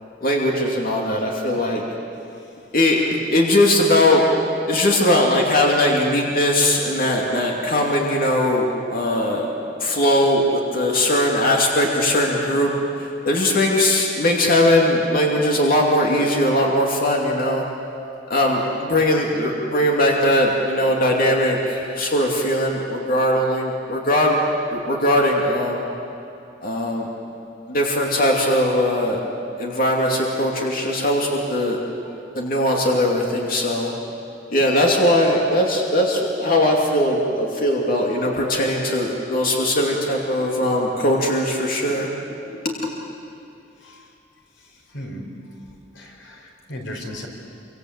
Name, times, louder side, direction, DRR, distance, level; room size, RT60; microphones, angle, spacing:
voice 1, 0.2-1.8 2.7-4.2 4.7-9.5 9.8-12.7 13.2-17.6 18.3-24.4 24.7-25.8 26.6-27.1 27.7-29.2 29.6-31.8 32.3-33.9 34.5-42.1, left 1 dB, 50° left, -1 dB, 2.7 m, -20 dB
voice 2, 44.9-45.2 46.0-47.3, equal, 90° left, 2 dB, 4.4 m, -36 dB
27.0 x 25.0 x 8.1 m, 2.7 s
head